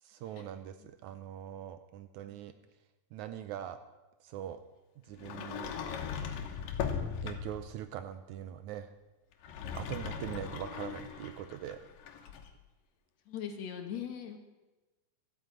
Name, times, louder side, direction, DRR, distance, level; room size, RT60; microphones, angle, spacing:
voice 1, 0.0-2.5 3.1-3.8 4.2-4.6 5.0-5.7 7.2-8.9 9.7-11.8, right 10 dB, 75° right, 10 dB, 1.9 m, -42 dB
Sliding door, 5.2-7.7 9.3-12.5, left 7 dB, 85° left, 2.9 m, -39 dB
voice 2, 13.3-14.4, left 8 dB, 60° left, 6 dB, 2.2 m, -41 dB
13.5 x 9.1 x 9.0 m, 1.1 s
omnidirectional pair, 3.8 m